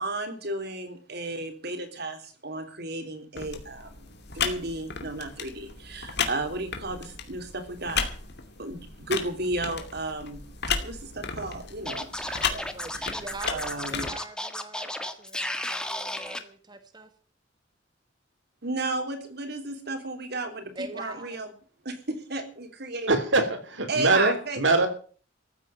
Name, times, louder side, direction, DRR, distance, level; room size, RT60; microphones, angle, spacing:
voice 1, 0.0-4.1 4.3-8.1 8.6-10.4 10.8-14.1 18.6-21.5 21.8-23.1 23.9-24.8, right 2 dB, 60° right, 7 dB, 3.5 m, -33 dB
sound 1, 3.4-14.1, left 6 dB, 60° left, 2.6 m, -34 dB
Scratching (performance technique), 11.9-16.4, left 1 dB, 5° left, 1.5 m, -33 dB
voice 2, 12.7-13.6 13.9-17.1 20.7-21.4, right 2 dB, 25° right, 8 dB, 1.3 m, -43 dB
voice 3, 23.1-24.9, right 3 dB, 75° right, 8 dB, 3.4 m, -23 dB
14.5 x 8.5 x 9.2 m, 0.42 s
head